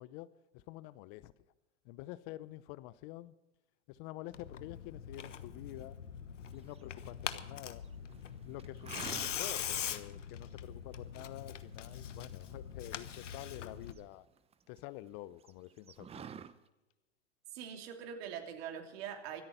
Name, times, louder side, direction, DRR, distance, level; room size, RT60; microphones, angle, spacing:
voice 1, 0.0-1.3 1.8-3.3 3.9-6.0 6.5-7.8 8.4-14.3 14.7-16.2, left 16 dB, 40° left, 0.6 m, -48 dB
Tearing, 4.3-13.9, left 9 dB, 85° left, 1.2 m, -42 dB
sound 1, 6.7-7.4 7.8-8.3 8.6-9.7 10.0-10.1 10.5-11.0 11.4-13.2 13.6-14.8 15.1-15.2 15.4-16.5, right 7 dB, 15° right, 0.7 m, -49 dB
voice 2, 17.5-19.4, right 8 dB, 55° right, 3.2 m, -43 dB
24.5 x 8.8 x 5.6 m
hypercardioid pair, 110°, 36 cm